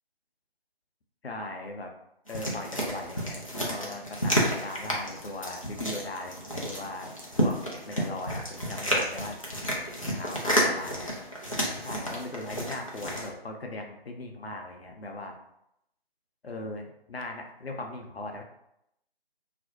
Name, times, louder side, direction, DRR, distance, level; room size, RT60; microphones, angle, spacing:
voice 1, 1.2-1.9 2.3-9.4 10.0-11.1 11.8-15.4 16.4-18.4, left 2 dB, 75° left, 3 dB, 0.6 m, -39 dB
sound 1, 2.3-13.3, equal, 35° left, 0.4 m, -31 dB
2.4 x 2.0 x 2.7 m, 0.80 s
figure-of-eight pair, 155°, 31 cm